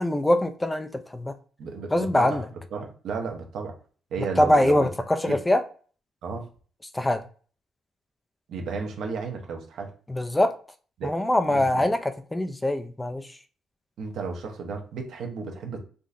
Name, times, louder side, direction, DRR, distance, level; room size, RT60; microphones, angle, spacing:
voice 1, 0.0-1.3 1.9-2.4 4.4-5.6 6.9-7.2 10.1-10.5 11.0-13.2, left 1 dB, 15° left, 0.4 m, -23 dB
voice 2, 1.6-2.5 2.7-3.8 4.1-4.9 5.3-5.4 6.2-6.5 8.5-9.9 11.0-11.2 11.5-11.8 14.0-15.8, right 4 dB, 75° right, 0.8 m, -33 dB
3.6 x 2.7 x 2.5 m
cardioid pair, 90°, 0 cm